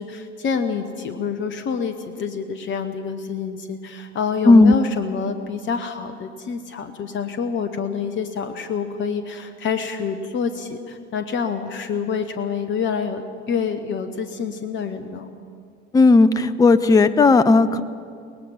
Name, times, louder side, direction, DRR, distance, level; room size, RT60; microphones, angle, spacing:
voice 1, 0.0-13.2 13.5-15.3, left 6 dB, 35° left, 7 dB, 1.3 m, -27 dB
voice 2, 15.9-17.8, left 3 dB, 10° left, 11 dB, 0.7 m, -14 dB
24.0 x 18.5 x 5.8 m, 2.2 s
figure-of-eight pair, 65°, 34 cm